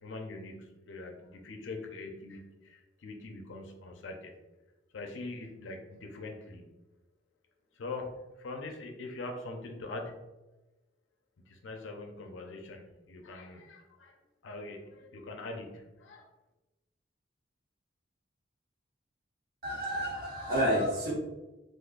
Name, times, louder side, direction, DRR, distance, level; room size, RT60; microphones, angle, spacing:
voice 1, 0.0-4.3 4.9-6.7 7.7-10.3 11.5-14.2 14.4-16.3, left 2 dB, 75° left, 3 dB, 0.5 m, -43 dB
voice 2, 19.6-21.1, equal, 50° right, -6 dB, 1.0 m, -30 dB
3.7 x 2.5 x 2.4 m, 1.1 s
head